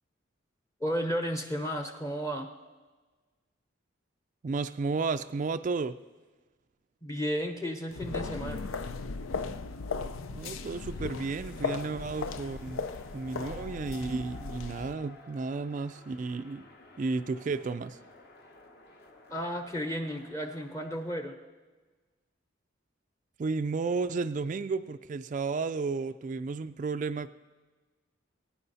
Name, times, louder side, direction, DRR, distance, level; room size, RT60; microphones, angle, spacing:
voice 1, 0.8-2.5 7.0-8.7 19.3-21.4, equal, 15° left, 5 dB, 0.8 m, -33 dB
voice 2, 4.4-6.0 10.3-12.8 13.1-16.7 17.0-18.0 23.4-27.3, right 4 dB, 40° right, 11 dB, 0.3 m, -32 dB
sound 1, 7.9-14.9, left 4 dB, 90° left, 0.6 m, -37 dB
sound 2, 10.5-21.1, left 2 dB, 50° left, 1.5 m, -53 dB
21.5 x 9.7 x 4.1 m, 1.3 s
head